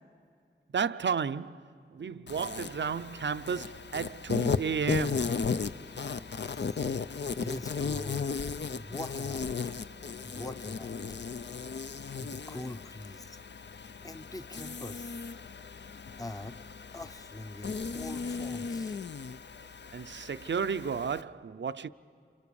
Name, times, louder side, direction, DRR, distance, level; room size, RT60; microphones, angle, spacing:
voice 1, 0.7-5.3 19.9-21.9, right 6 dB, 70° right, 0.5 m, -33 dB
Insect, 2.3-21.2, left 5 dB, 65° left, 0.6 m, -36 dB
voice 2, 6.4-7.0 7.4-9.5 10.2-11.0 12.2-13.4 14.0-15.1 16.2-16.6 16.9-19.0, left 1 dB, 20° left, 0.7 m, -43 dB
29.0 x 27.5 x 7.0 m
wide cardioid pair, 60°, 19 cm